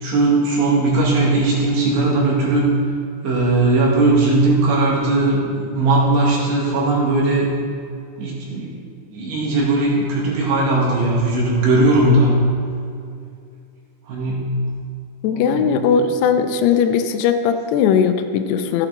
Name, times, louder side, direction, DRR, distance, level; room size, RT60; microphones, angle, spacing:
voice 1, 0.0-2.7 3.2-7.5 8.2-8.7 9.1-12.4 14.1-14.6 15.3-16.0, right 2 dB, 65° right, -4 dB, 3.9 m, -18 dB
voice 2, 15.2-18.9, left 7 dB, 90° left, 7 dB, 2.3 m, -18 dB
14.5 x 8.7 x 4.0 m, 2.4 s
omnidirectional pair, 5.6 m